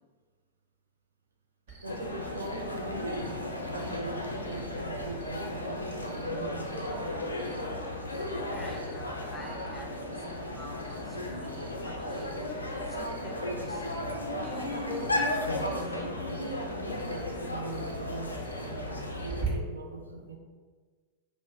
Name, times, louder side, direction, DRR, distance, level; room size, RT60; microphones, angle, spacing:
Cricket, 1.7-19.5, right 5 dB, 60° right, 0.8 m, -49 dB
sound 1, 1.8-19.4, left 1 dB, 80° left, 0.3 m, -35 dB
voice 1, 1.8-7.2 14.3-14.4 16.3-20.4, right 2 dB, 75° right, 3 dB, 0.3 m, -41 dB
voice 2, 8.0-13.8 14.4-16.1, left 2 dB, 5° left, -2 dB, 0.6 m, -46 dB
2.9 x 2.0 x 3.3 m, 1.4 s
figure-of-eight pair, 90°, 0 cm